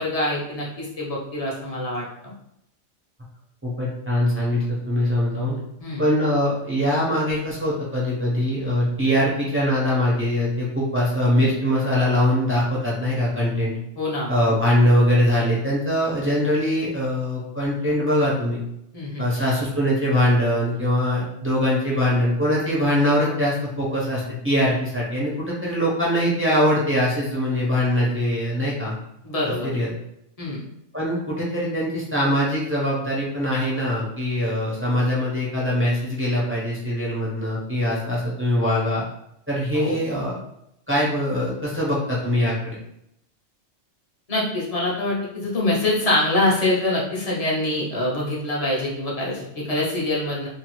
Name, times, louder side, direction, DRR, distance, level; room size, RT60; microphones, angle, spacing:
voice 1, 0.0-2.0 5.8-6.0 14.0-14.3 18.9-19.3 29.2-29.7 30.4-30.6 39.7-40.0 44.3-50.5, left 1 dB, 35° left, -5 dB, 0.7 m, -24 dB
voice 2, 3.6-5.5 6.0-13.7 14.3-18.6 19.2-28.9 29.4-29.9 30.9-39.1 39.5-40.4 40.9-42.8, left 1 dB, 15° right, -7 dB, 0.5 m, -22 dB
2.6 x 2.4 x 3.0 m, 0.79 s
omnidirectional pair, 1.3 m